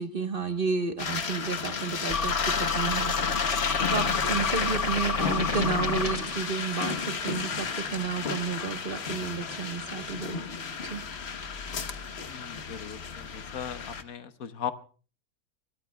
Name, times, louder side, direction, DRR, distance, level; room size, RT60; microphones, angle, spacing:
voice 1, 0.0-3.1 3.9-10.4 10.9-11.0, right 5 dB, 40° right, 6 dB, 1.4 m, -32 dB
sound 1, 1.0-14.0, left 5 dB, 50° left, 1.3 m, -32 dB
sound 2, 2.1-6.5, left 5 dB, 30° left, 0.8 m, -30 dB
voice 2, 12.2-14.7, left 8 dB, 70° left, 10 dB, 1.4 m, -38 dB
25.0 x 23.0 x 2.3 m, 0.39 s
omnidirectional pair, 1.5 m